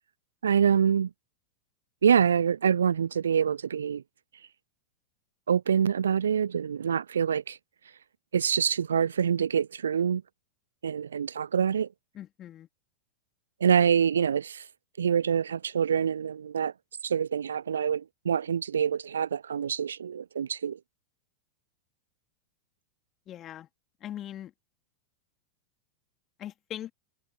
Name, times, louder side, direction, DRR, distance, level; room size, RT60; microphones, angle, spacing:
voice 1, 0.4-1.1 2.0-4.0 5.5-7.6 8.3-10.2 10.8-11.9 13.6-14.7 15.0-16.7 17.0-20.8, right 7 dB, 70° right, 0.5 m, -25 dB
voice 2, 12.1-12.7 23.3-23.7 24.0-24.5 26.4-26.9, left 11 dB, 30° left, 2.8 m, -40 dB
figure-of-eight pair, 90°, 0 cm